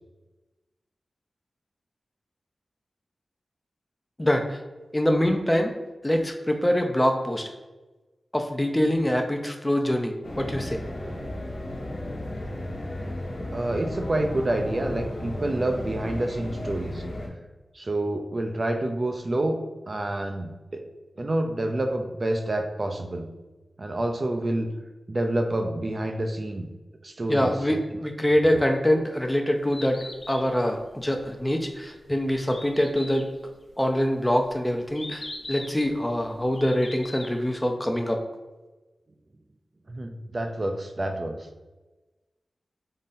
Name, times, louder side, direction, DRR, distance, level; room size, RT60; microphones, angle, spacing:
voice 1, 4.2-4.6 4.9-5.7 6.0-7.5 8.3-10.8 27.3-30.0 30.3-33.3 33.8-38.2, equal, 15° left, 4 dB, 0.6 m, -24 dB
sound 1, 10.2-17.3, left 1 dB, 70° left, 1.1 m, -34 dB
voice 2, 13.5-17.0 17.7-19.6 19.9-20.9 21.2-23.3 23.8-24.7 25.1-26.7 27.0-27.8 28.5-28.6 39.9-41.4, right 1 dB, 45° right, 4 dB, 0.5 m, -28 dB
Bird, 29.5-37.5, left 2 dB, 50° left, 0.7 m, -42 dB
3.8 x 3.2 x 4.0 m, 1.2 s
cardioid pair, 55°, 0 cm